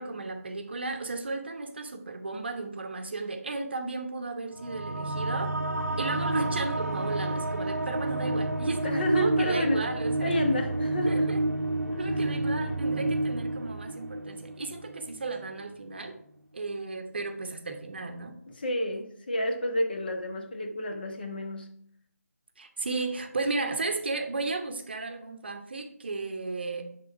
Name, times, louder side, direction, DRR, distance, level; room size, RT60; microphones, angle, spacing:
voice 1, 0.0-5.5 6.0-10.4 11.0-11.4 12.0-16.1 16.5-18.3 22.6-26.8, right 3 dB, 40° right, 1.0 m, -34 dB
sound 1, 4.5-15.5, right 2 dB, 70° right, 0.9 m, -30 dB
voice 2, 8.8-9.8 10.2-11.3 11.9-12.2 18.5-21.7, left 1 dB, 35° left, 1.2 m, -30 dB
9.9 x 3.8 x 5.8 m
figure-of-eight pair, 155°, 9 cm